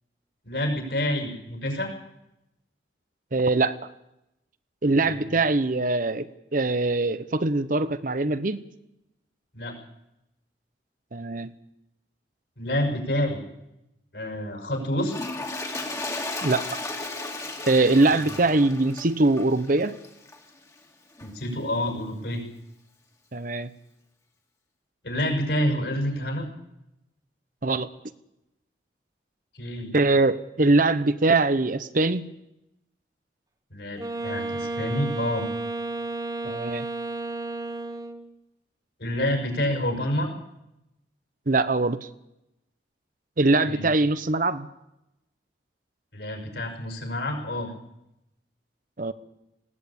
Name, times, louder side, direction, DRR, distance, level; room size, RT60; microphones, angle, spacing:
voice 1, 0.4-1.9 5.1-5.3 9.5-9.7 12.6-13.4 14.1-15.2 18.2-18.3 21.2-22.4 25.0-26.5 29.5-29.9 33.7-35.5 39.0-40.3 43.7-43.9 46.1-47.7, left 1 dB, 65° left, 3 dB, 5.9 m, -28 dB
voice 2, 3.3-3.8 4.8-8.6 11.1-11.5 16.4-16.7 17.7-20.0 23.3-23.7 27.6-27.9 29.9-32.3 36.4-36.9 41.5-42.1 43.4-44.7 49.0-49.1, right 2 dB, 50° right, 13 dB, 0.9 m, -22 dB
Toilet flush, 15.0-20.5 21.2-21.3, left 2 dB, 20° left, 2.1 m, -35 dB
Wind instrument woodwind instrument, 34.0-38.3, right 2 dB, 20° right, 1.3 m, -32 dB
20.0 x 16.5 x 8.7 m, 0.87 s
head